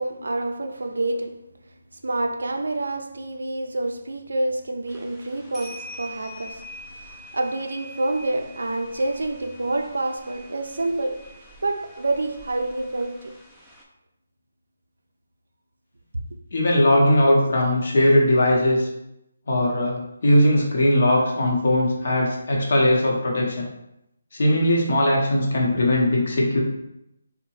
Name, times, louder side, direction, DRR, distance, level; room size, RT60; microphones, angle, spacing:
voice 1, 0.0-1.5 1.9-11.4 11.6-13.3, right 2 dB, 85° right, 0.3 m, -28 dB
sound 1, 4.9-13.8, equal, ahead, 0.3 m, -45 dB
voice 2, 16.5-18.9 19.5-19.9 20.2-23.7 24.3-26.6, left 1 dB, 60° left, 0.7 m, -19 dB
2.7 x 2.0 x 3.0 m
hypercardioid pair, 160°, 0 cm